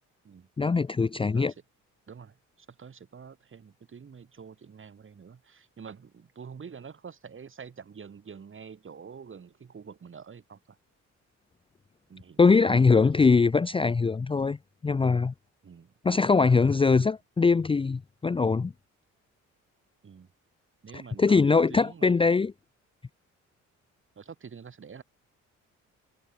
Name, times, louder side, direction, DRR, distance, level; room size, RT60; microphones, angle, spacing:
voice 1, 0.6-1.5 12.4-14.6 14.8-15.3 16.0-18.7 21.2-22.5, left 4 dB, 20° left, 0.5 m, -22 dB
voice 2, 2.1-10.8 12.1-13.2 15.6-15.9 17.0-17.1 20.0-20.3 20.8-22.2 24.2-25.0, right 6 dB, 40° right, 5.5 m, -47 dB
cardioid pair, 90°, 30 cm